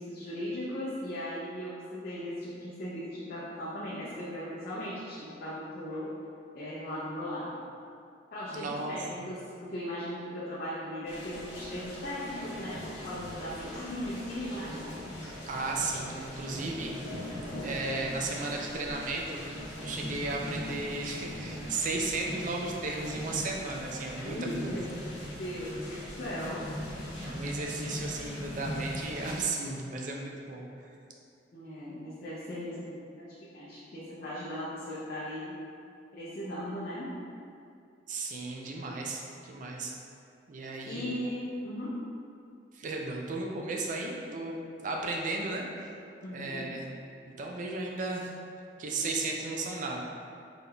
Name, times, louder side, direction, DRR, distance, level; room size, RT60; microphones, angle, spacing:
voice 1, 0.0-6.1 6.5-7.6 8.3-14.8 24.2-24.8 25.4-26.8 27.7-27.8 31.5-35.6 36.1-37.2 40.8-42.0 46.2-46.7, equal, 55° left, -9 dB, 0.6 m, -38 dB
voice 2, 8.5-8.9 15.5-17.1 17.6-19.4 19.8-24.4 24.6-24.7 27.2-30.9 38.1-39.9 40.5-41.1 42.7-45.7 46.3-46.9 47.4-48.3 48.8-50.0, right 3 dB, 45° right, 0 dB, 0.4 m, -35 dB
sound 1, 11.1-29.5, equal, 85° left, 0.9 m, -40 dB
3.9 x 3.5 x 2.3 m, 2.5 s
head